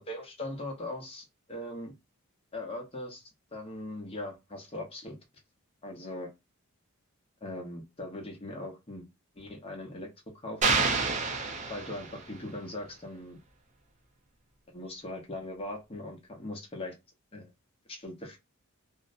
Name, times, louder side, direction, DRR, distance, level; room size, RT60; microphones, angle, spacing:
voice 1, 0.0-1.9 2.5-5.2 5.8-6.3 7.4-9.1 9.4-10.1 10.4-10.8 11.7-13.4 14.7-16.9 17.3-17.5 17.9-18.4, left 1 dB, 25° left, 0.6 m, -40 dB
sound 1, 10.6-12.3, right 4 dB, 35° right, 0.4 m, -28 dB
2.5 x 2.0 x 2.4 m
head